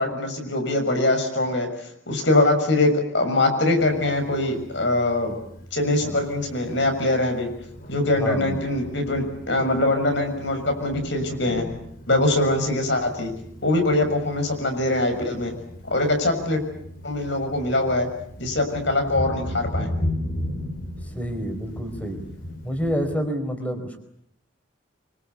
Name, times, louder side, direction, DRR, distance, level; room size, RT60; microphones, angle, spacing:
voice 1, 0.0-1.7 2.1-5.3 5.7-7.5 7.9-11.6 12.1-13.3 13.6-15.5 15.9-16.6 17.0-18.1 18.4-19.9, left 2 dB, 65° left, 5 dB, 6.6 m, -22 dB
Thunder, 3.8-23.1, left 1 dB, 50° left, 4.3 m, -36 dB
voice 2, 8.2-8.7 21.1-22.2 22.6-24.0, equal, 5° left, 6 dB, 4.6 m, -28 dB
25.5 x 25.5 x 8.4 m, 0.70 s
head